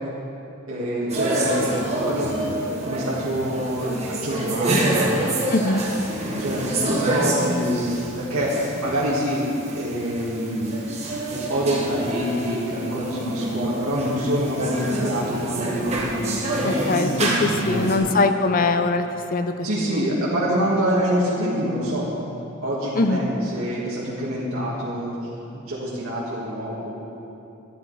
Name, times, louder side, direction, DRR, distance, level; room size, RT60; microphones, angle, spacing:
voice 1, 0.7-1.6 2.0-5.3 6.4-9.4 9.7-10.8 11.5-16.4 17.0-18.2 19.6-22.1 22.6-25.1 25.5-27.0, equal, 75° right, -7 dB, 1.7 m, -26 dB
sound 1, 1.1-18.0, right 1 dB, 30° right, 1.3 m, -27 dB
voice 2, 5.5-5.8 16.6-20.0 23.0-23.3, left 3 dB, 40° left, 8 dB, 0.5 m, -22 dB
13.5 x 10.5 x 4.1 m, 2.8 s
head